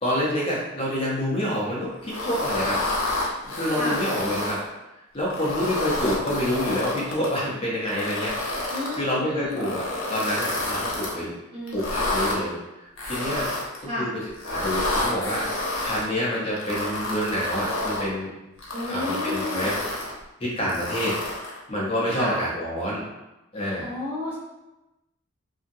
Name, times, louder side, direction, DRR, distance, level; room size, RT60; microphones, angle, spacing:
voice 1, 0.0-2.8 3.4-4.6 5.1-9.8 10.1-11.3 11.7-13.5 13.8-18.3 18.9-19.8 20.4-23.0 23.5-23.9, equal, 30° left, -6 dB, 0.7 m, -28 dB
sound 1, 2.0-4.6 5.2-7.4 7.9-9.0 9.5-11.1 11.7-12.4 13.0-13.8 14.3-16.0 16.6-18.1 18.6-20.1 20.7-21.6, left 2 dB, 90° left, 0.7 m, -29 dB
voice 2, 8.7-9.7 11.5-11.8 13.8-14.1 18.7-19.7 22.1-22.4 23.8-24.4, left 2 dB, 30° right, -8 dB, 1.0 m, -31 dB
2.8 x 2.6 x 2.6 m, 0.98 s
head